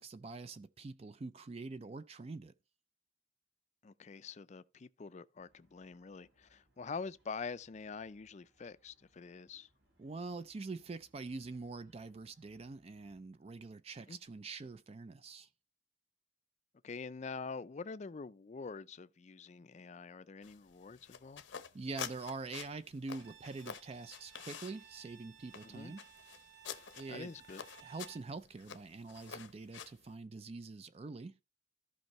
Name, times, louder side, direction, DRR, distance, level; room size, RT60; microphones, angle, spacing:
voice 1, 0.0-2.5 10.0-15.5 21.7-26.1 27.0-27.3 27.8-31.3, right 3 dB, 30° right, 0.4 m, -45 dB
voice 2, 3.8-9.7 14.1-14.2 16.8-21.4 25.6-25.9 27.1-27.6, left 4 dB, 35° left, 0.4 m, -45 dB
sound 1, 5.3-13.2, right 1 dB, 60° right, 3.5 m, -74 dB
sound 2, 20.4-30.1, left 7 dB, 80° left, 0.8 m, -49 dB
Bowed string instrument, 23.1-28.3, right 9 dB, 80° right, 2.2 m, -59 dB
14.5 x 5.4 x 3.0 m
head